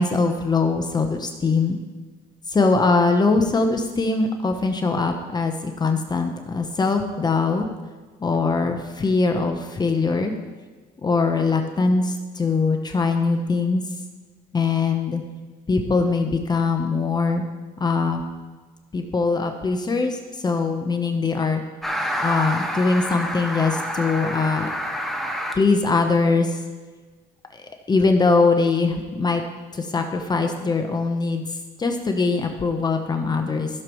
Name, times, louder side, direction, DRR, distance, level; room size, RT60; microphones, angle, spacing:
voice 1, 0.0-1.8 2.5-7.7 8.2-10.3 11.0-13.8 14.5-15.2 15.7-17.4 17.8-18.2 18.9-20.2 20.4-21.6 22.2-24.7 25.5-26.6 27.9-29.4 29.7-31.4 31.8-33.7, left 4 dB, 25° left, 4 dB, 0.9 m, -22 dB
sound 1, 21.8-25.5, equal, ahead, 1.1 m, -28 dB
15.0 x 6.7 x 3.1 m, 1.4 s
cardioid pair, 110°, 17 cm